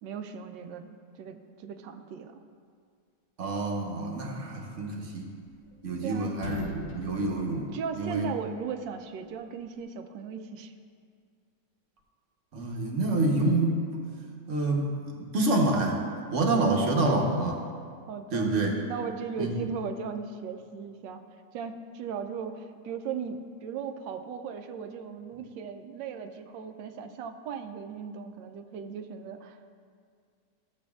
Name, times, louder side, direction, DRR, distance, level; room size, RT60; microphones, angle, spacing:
voice 1, 0.0-2.4 6.0-6.3 7.7-10.7 16.6-16.8 18.1-18.5 18.9-21.2 21.5-29.7, right 6 dB, 85° right, 7 dB, 1.3 m, -37 dB
voice 2, 3.4-5.3 5.8-7.7 7.9-8.3 12.5-14.0 14.5-16.0 16.3-17.6 18.3-18.7 19.4-19.5, right 2 dB, 50° right, 0 dB, 1.2 m, -27 dB
sound 1, 5.2-6.0 6.3-8.4, left 4 dB, 65° left, 0.7 m, -40 dB
14.0 x 7.7 x 2.3 m, 2.1 s
omnidirectional pair, 1.9 m